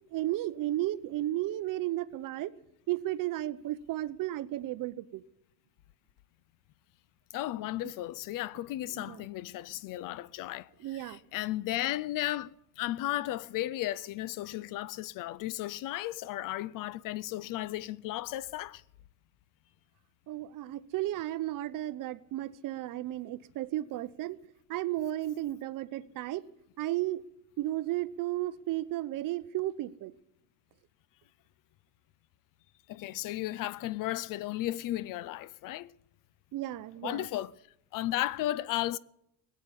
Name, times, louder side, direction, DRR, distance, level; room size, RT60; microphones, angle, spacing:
voice 1, 0.1-2.5 2.9-5.2 7.8-7.9 8.9-9.2 10.8-11.2 20.3-24.4 24.7-26.4 26.8-27.2 27.6-30.1 36.5-37.3, right 15 dB, 50° right, 0.8 m, -34 dB
voice 2, 7.3-18.8 32.9-35.9 37.0-37.5 37.9-39.0, left 15 dB, 50° left, 0.5 m, -34 dB
17.5 x 8.5 x 9.5 m
supercardioid pair, 115°, 42 cm